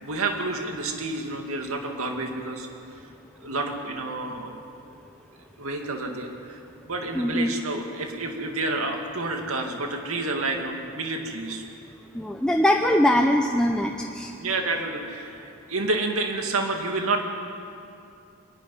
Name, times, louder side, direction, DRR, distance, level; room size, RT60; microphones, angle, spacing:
voice 1, 0.0-2.7 3.4-4.6 5.6-6.6 6.9-11.6 14.4-17.2, right 2 dB, 75° right, 3 dB, 2.2 m, -29 dB
voice 2, 7.1-7.5 12.1-14.3, left 1 dB, 5° left, 1 dB, 0.7 m, -22 dB
25.5 x 11.5 x 10.0 m, 2.6 s
head